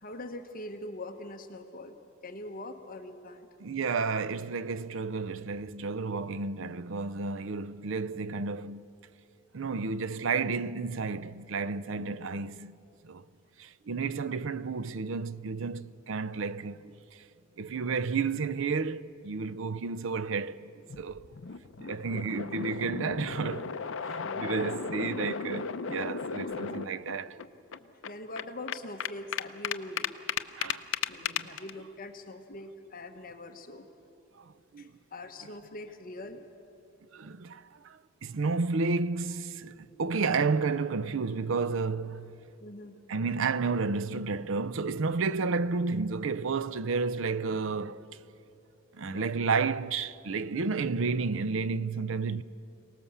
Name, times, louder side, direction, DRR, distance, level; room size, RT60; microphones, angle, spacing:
voice 1, 0.0-2.0 2.2-3.5 12.0-12.4 22.4-22.6 24.2-24.7 26.3-27.2 27.8-30.1 31.1-33.9 34.8-36.4 42.6-42.9 49.0-49.3, left 1 dB, 45° left, 1.2 m, -43 dB
voice 2, 3.6-8.8 9.5-12.7 13.0-13.2 13.6-17.2 17.6-20.7 21.0-21.2 21.8-27.4 30.6-30.9 31.3-31.6 34.4-34.9 37.1-42.5 43.1-48.1 48.9-52.4, right 4 dB, 70° right, 0.5 m, -31 dB
sound 1, 20.9-27.1 27.4-27.5 27.7-31.7, left 6 dB, 65° left, 0.7 m, -35 dB
24.5 x 18.5 x 7.2 m
head